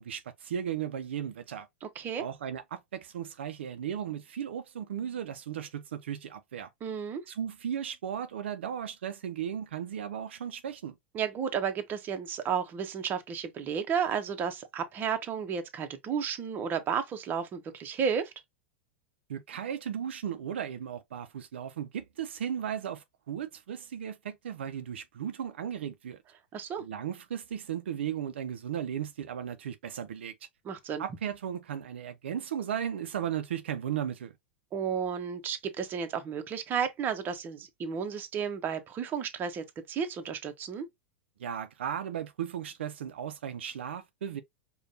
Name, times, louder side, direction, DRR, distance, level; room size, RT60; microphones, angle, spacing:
voice 1, 0.0-1.7 2.2-6.7 7.3-11.0 19.3-26.2 26.8-30.3 31.0-34.3 41.4-44.4, right 9 dB, 75° right, 0.5 m, -36 dB
voice 2, 1.8-2.2 6.8-7.2 11.1-18.3 26.5-26.8 30.6-31.0 34.7-40.9, right 7 dB, 30° right, 0.8 m, -32 dB
5.0 x 2.3 x 2.7 m
hypercardioid pair, 100°, 6 cm